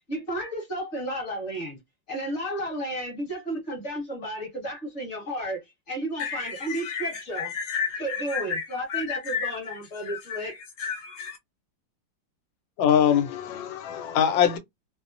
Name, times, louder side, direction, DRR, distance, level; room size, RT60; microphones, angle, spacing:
voice 1, 0.1-1.8 2.1-5.6 5.9-7.5 8.0-10.6, right 1 dB, 45° left, 1.3 m, -32 dB
voice 2, 6.2-11.4, left 6 dB, 70° left, 1.1 m, -33 dB
voice 3, 12.8-14.6, left 9 dB, 85° left, 1.4 m, -22 dB
3.1 x 2.0 x 2.4 m
omnidirectional pair, 2.0 m